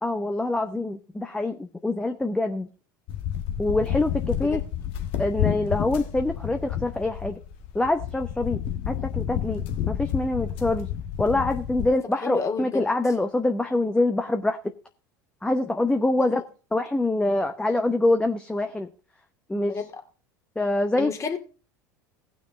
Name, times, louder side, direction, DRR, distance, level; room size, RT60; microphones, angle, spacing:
voice 1, 0.0-2.7 3.6-4.6 5.2-7.4 7.7-8.6 8.9-10.9 11.2-14.6 15.4-16.4 16.7-18.9 19.5-19.7 20.6-21.1, left 2 dB, 10° left, 0.8 m, -25 dB
sound 1, 3.1-11.9, left 10 dB, 55° left, 1.5 m, -30 dB
voice 2, 11.9-12.9 16.2-16.4 19.5-20.0 21.0-21.4, left 4 dB, 30° left, 2.4 m, -32 dB
18.0 x 6.2 x 3.7 m
hypercardioid pair, 80°, 11 cm